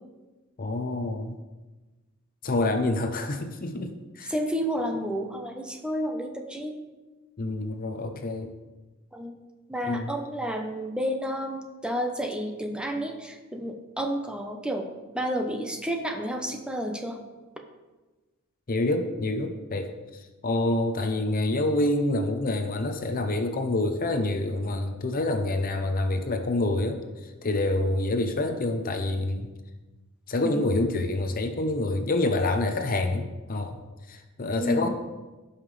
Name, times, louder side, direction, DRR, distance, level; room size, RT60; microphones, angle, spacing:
voice 1, 0.6-1.4 2.4-4.4 7.4-8.5 9.8-10.1 18.7-19.9 20.4-27.0 27.4-29.5 30.3-33.8 34.1-34.9, left 2 dB, 40° left, 6 dB, 0.7 m, -27 dB
voice 2, 4.3-6.8 9.1-9.3 9.7-14.9 15.1-17.2 30.4-30.8 34.6-34.9, equal, 5° right, 3 dB, 0.8 m, -31 dB
16.0 x 5.7 x 3.3 m, 1.2 s
head